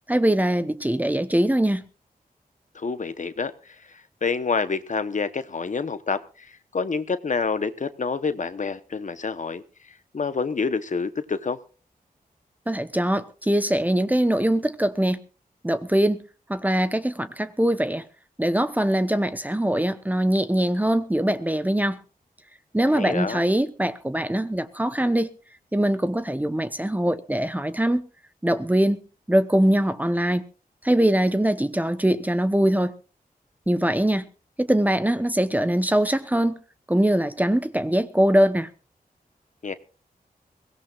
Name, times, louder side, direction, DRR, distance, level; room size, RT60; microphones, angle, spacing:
voice 1, 0.1-1.8 12.7-15.2 15.6-16.2 16.5-18.0 18.4-22.0 22.7-25.3 25.7-28.1 28.4-29.0 29.3-30.4 30.8-32.9 33.7-34.2 34.6-36.6 36.9-38.7, right 1 dB, 10° right, 0.9 m, -22 dB
voice 2, 2.7-11.6 22.9-23.4 39.6-39.7, left 4 dB, 55° left, 1.0 m, -28 dB
22.5 x 17.5 x 2.5 m
wide cardioid pair, 90°, 16 cm